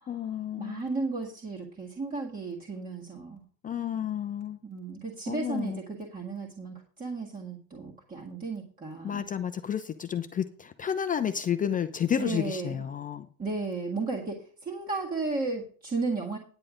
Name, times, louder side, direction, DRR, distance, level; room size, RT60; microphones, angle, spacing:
voice 1, 0.1-0.9 3.6-4.6 5.3-5.8 9.0-13.3, left 9 dB, 20° left, 8 dB, 0.4 m, -31 dB
voice 2, 0.6-3.4 4.6-9.3 12.2-12.8 13.4-16.4, right 3 dB, 15° right, -3 dB, 1.8 m, -34 dB
10.0 x 7.7 x 5.0 m, 0.43 s
supercardioid pair, 120°, 49 cm